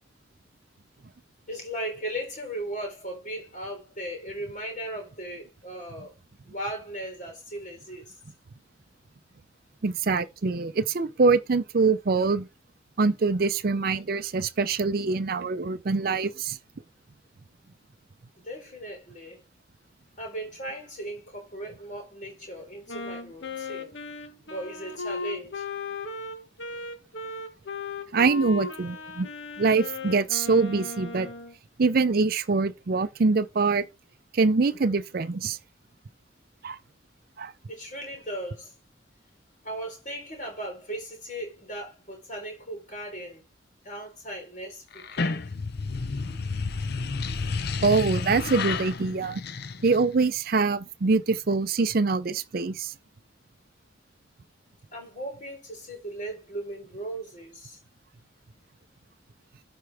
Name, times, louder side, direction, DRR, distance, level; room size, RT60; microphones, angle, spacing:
voice 1, 1.5-6.1 6.5-8.2 18.4-19.4 20.2-23.9 24.5-25.7 37.7-38.7 39.6-43.4 43.8-45.4 54.9-57.8, right 1 dB, 40° left, 3.9 m, -37 dB
voice 2, 9.8-12.5 13.0-16.6 28.1-29.3 29.6-31.3 31.8-33.9 34.3-35.6 36.6-36.8 37.4-37.5 47.8-49.4 49.8-52.9, right 4 dB, 50° right, 0.5 m, -24 dB
Wind instrument woodwind instrument, 22.9-31.5, left 3 dB, 80° left, 1.4 m, -36 dB
sound 1, 44.9-50.2, left 4 dB, 55° left, 0.6 m, -31 dB
12.5 x 4.5 x 3.4 m
head